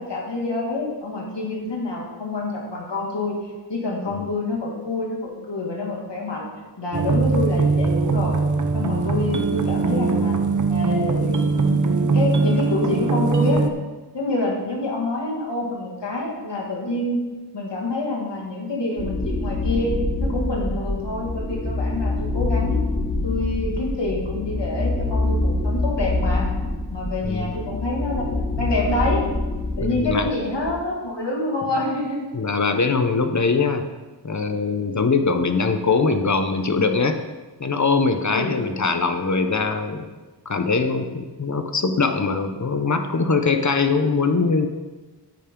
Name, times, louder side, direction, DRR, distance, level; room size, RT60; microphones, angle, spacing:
voice 1, 0.0-3.3 3.7-6.5 6.8-8.4 8.7-10.4 10.7-13.6 14.1-17.2 17.5-22.8 23.2-26.4 26.9-29.2 29.8-32.3 38.3-38.6, left 2 dB, 80° left, -2 dB, 2.4 m, -27 dB
sound 1, 6.9-13.7, right 4 dB, 45° right, 0.8 m, -21 dB
sound 2, 19.0-30.7, left 2 dB, 15° left, 2.7 m, -25 dB
voice 2, 27.2-27.5 29.8-30.3 32.3-33.9 34.2-37.2 37.6-40.1 40.5-44.7, left 4 dB, 45° left, 7 dB, 0.8 m, -22 dB
9.1 x 8.8 x 3.8 m, 1.2 s
wide cardioid pair, 90°, 42 cm